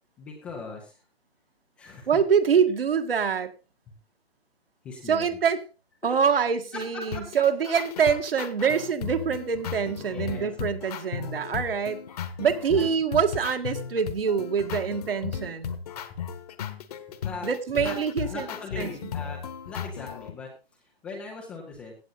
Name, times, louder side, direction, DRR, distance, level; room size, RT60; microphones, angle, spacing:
voice 1, 0.2-1.0 1.8-2.2 3.9-4.0 4.8-5.4 6.0-6.4 6.7-7.4 10.0-10.5 12.2-12.4 12.7-12.9 16.1-16.2 17.1-18.0 18.3-22.0, left 4 dB, 5° left, 0 dB, 0.5 m, -40 dB
voice 2, 2.1-3.5 5.1-5.6 6.0-12.0 12.4-15.8 17.4-18.4 18.8-18.9, right 6 dB, 65° right, 7 dB, 1.8 m, -25 dB
sound 1, 6.8-20.3, left 8 dB, 40° left, 1.3 m, -36 dB
16.0 x 8.3 x 3.9 m, 0.32 s
hypercardioid pair, 155°, 31 cm